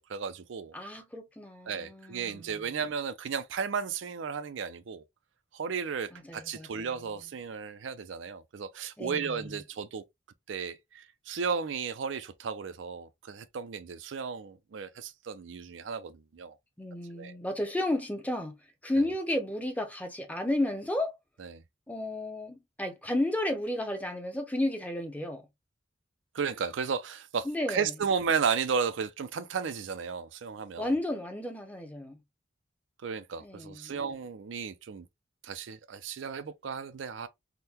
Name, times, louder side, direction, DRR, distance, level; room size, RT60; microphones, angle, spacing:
voice 1, 0.0-0.7 1.7-5.0 5.5-10.0 10.5-16.6 17.1-17.4 21.4-21.6 26.3-30.9 33.0-35.1 35.4-37.3, right 6 dB, 80° right, 0.4 m, -34 dB
voice 2, 0.7-2.6 6.1-6.9 9.0-9.5 16.8-18.5 18.8-21.1 21.9-25.4 27.4-27.9 30.8-32.2 33.4-34.0, left 1 dB, 10° left, 0.6 m, -32 dB
3.6 x 2.1 x 2.8 m
head